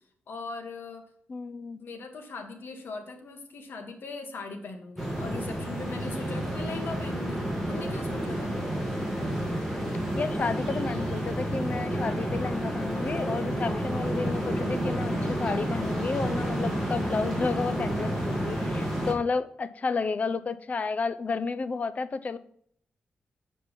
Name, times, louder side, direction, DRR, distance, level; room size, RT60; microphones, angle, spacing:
voice 1, 0.3-1.0 1.8-8.5, left 3 dB, 70° left, 3 dB, 1.6 m, -40 dB
voice 2, 1.3-1.8 10.2-22.4, left 4 dB, 40° left, 13 dB, 0.5 m, -31 dB
sound 1, 5.0-19.1, right 1 dB, ahead, 2.0 m, -30 dB
7.2 x 5.2 x 5.3 m, 0.64 s
wide cardioid pair, 125°, 4 cm